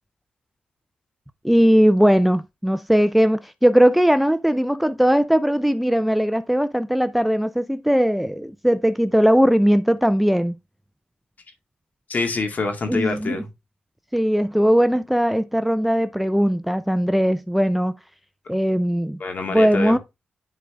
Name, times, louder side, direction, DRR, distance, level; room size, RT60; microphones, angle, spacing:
voice 1, 1.4-10.5 12.9-13.4 14.1-18.0 18.5-19.2 19.5-20.0, equal, 5° right, 0.4 m, -19 dB
voice 2, 12.1-13.5 19.2-20.0, left 3 dB, 50° left, 2.0 m, -26 dB
10.0 x 3.9 x 3.4 m
cardioid pair, 75°, 4 cm